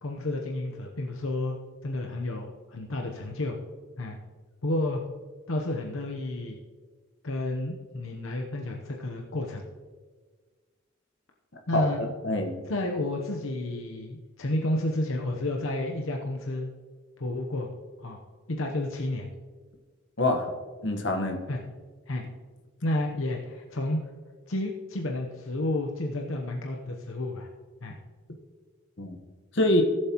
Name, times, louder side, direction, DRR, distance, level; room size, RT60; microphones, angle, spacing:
voice 1, 0.0-1.6 1.8-3.6 4.0-4.2 4.6-5.0 5.5-6.6 7.2-9.6 11.7-12.0 12.7-16.7 17.2-17.7 18.0-18.2 18.5-19.3 21.5-21.6 22.1-22.2 22.8-24.0 24.5-27.5 27.8-28.0, left 1 dB, 80° left, 1 dB, 0.9 m, -31 dB
voice 2, 11.7-12.5 20.2-20.5 20.8-21.4 29.0-29.2 29.5-29.8, left 1 dB, 60° left, 3 dB, 1.3 m, -25 dB
17.0 x 7.8 x 3.0 m, 1.4 s
head